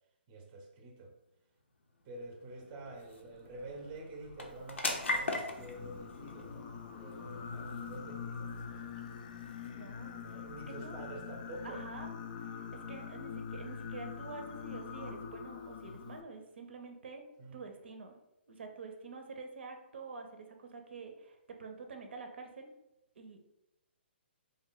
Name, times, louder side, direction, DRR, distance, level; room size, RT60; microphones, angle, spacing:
voice 1, 0.3-1.2 2.0-9.1 10.1-11.9 17.4-17.7, right 2 dB, 25° right, 3 dB, 0.5 m, -48 dB
sound 1, 1.4-16.2, left 2 dB, 90° left, 0.6 m, -44 dB
Singing, 5.5-16.2, left 6 dB, 45° left, 0.3 m, -44 dB
voice 2, 9.7-10.2 10.8-11.0 11.6-17.2 17.5-18.2 18.5-22.7 23.2-23.4, right 4 dB, 70° right, 5 dB, 0.5 m, -47 dB
3.3 x 2.2 x 3.7 m, 0.92 s
hypercardioid pair, 140°, 6 cm